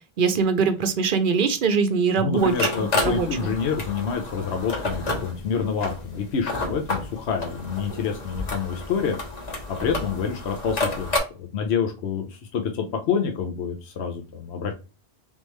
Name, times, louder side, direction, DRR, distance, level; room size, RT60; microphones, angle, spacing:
voice 1, 0.2-3.5, right 5 dB, 60° right, 9 dB, 0.7 m, -22 dB
voice 2, 2.2-9.2 9.8-11.1 11.4-14.7, left 6 dB, 85° left, 4 dB, 1.0 m, -27 dB
sound 1, 2.4-11.2, left 2 dB, 40° left, 1.1 m, -30 dB
3.5 x 3.1 x 3.1 m, 0.31 s
omnidirectional pair, 1.1 m